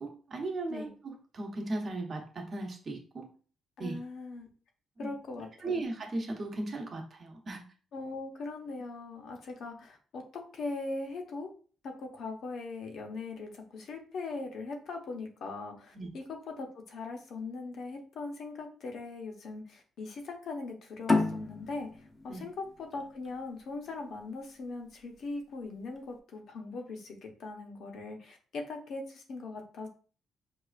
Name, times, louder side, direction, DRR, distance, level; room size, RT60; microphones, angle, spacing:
voice 1, 0.0-3.3 3.8-3.9 5.0-5.1 5.6-7.6 15.9-16.1 22.3-22.4, right 2 dB, 45° right, 2 dB, 0.9 m, -37 dB
voice 2, 3.8-4.5 5.0-5.8 7.9-11.5 11.8-21.9 22.2-29.9, left 3 dB, 65° left, 3 dB, 0.8 m, -40 dB
sound 1, 21.1-24.3, left 3 dB, 25° left, 0.5 m, -31 dB
4.7 x 2.4 x 2.4 m, 0.40 s
cardioid pair, 90°, 0 cm